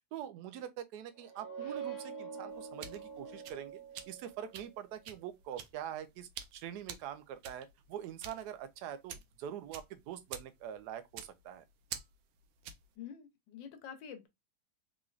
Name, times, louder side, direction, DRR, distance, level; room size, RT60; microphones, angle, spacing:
voice 1, 0.1-3.8 4.1-11.6, right 10 dB, 70° right, 1.0 m, -44 dB
sound 1, 1.1-4.7, right 6 dB, 60° left, 0.9 m, -45 dB
sound 2, 2.5-12.9, right 8 dB, 90° right, 1.3 m, -49 dB
voice 2, 13.0-14.3, left 8 dB, 80° left, 1.4 m, -47 dB
3.7 x 3.0 x 2.4 m
omnidirectional pair, 2.0 m